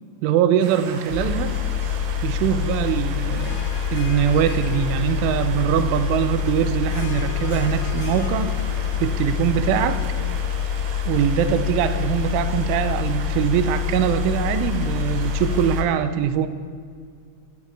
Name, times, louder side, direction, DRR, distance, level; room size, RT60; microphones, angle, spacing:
voice 1, 0.2-1.6 2.2-3.6 3.9-8.5 9.0-10.0 11.1-16.5, right 9 dB, 85° right, 11 dB, 3.3 m, -22 dB
sound 1, 0.6-15.8, right 5 dB, 65° right, 2.6 m, -38 dB
sound 2, 1.1-15.9, left 9 dB, 55° left, 2.7 m, -26 dB
Harp, 3.2-11.9, left 7 dB, 75° left, 1.6 m, -41 dB
17.0 x 8.3 x 8.4 m, 2.1 s
omnidirectional pair, 5.5 m